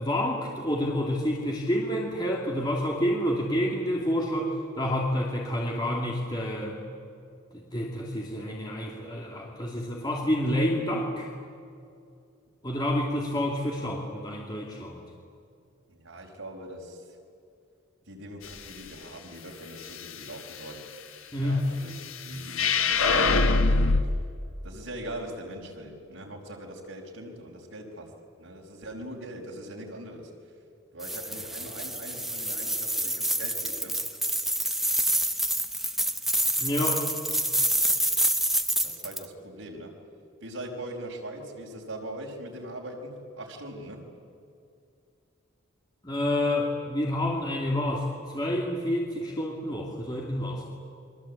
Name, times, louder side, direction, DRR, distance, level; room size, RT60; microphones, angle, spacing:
voice 1, 0.0-6.8 7.5-11.3 12.6-15.0 21.3-21.7 36.6-37.0 46.0-48.1 48.3-50.6, left 1 dB, 20° left, -2 dB, 2.7 m, -28 dB
voice 2, 15.9-17.2 18.1-20.8 21.4-21.9 22.2-23.7 24.0-24.2 24.6-28.1 28.4-30.3 30.9-34.0 38.8-39.9 40.4-44.0, right 1 dB, 80° right, 0 dB, 5.3 m, -41 dB
sound 1, 22.5-24.0, left 3 dB, 80° left, 1.3 m, -21 dB
sound 2, 31.0-39.3, right 1 dB, ahead, 0.8 m, -27 dB
29.5 x 23.0 x 8.6 m, 2.5 s
head